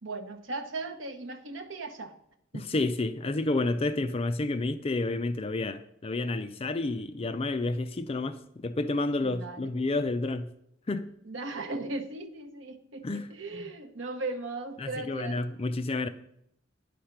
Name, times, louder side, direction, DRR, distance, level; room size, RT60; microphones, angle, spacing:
voice 1, 0.0-2.1 2.5-2.8 9.2-9.7 11.2-15.4, right 3 dB, 65° right, 0.9 m, -37 dB
voice 2, 2.5-10.5 10.9-11.1 13.0-13.3 13.5-13.7 14.8-16.1, left 2 dB, 30° left, 0.4 m, -30 dB
10.0 x 5.1 x 5.8 m
head